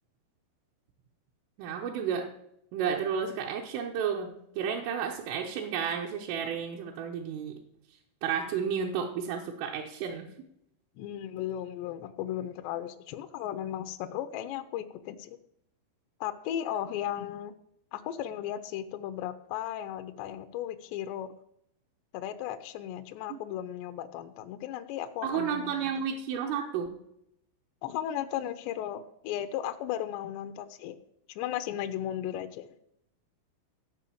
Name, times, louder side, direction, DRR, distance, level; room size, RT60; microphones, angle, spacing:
voice 1, 1.6-2.3 2.7-7.6 8.2-10.3 23.3-23.4 25.2-27.0, right 7 dB, 80° right, -1 dB, 3.5 m, -32 dB
voice 2, 11.0-15.4 16.2-17.5 17.9-21.3 22.1-26.1 27.8-31.0 31.3-32.7, left 11 dB, 80° left, 8 dB, 2.5 m, -35 dB
15.0 x 5.5 x 8.5 m, 0.77 s
omnidirectional pair, 5.8 m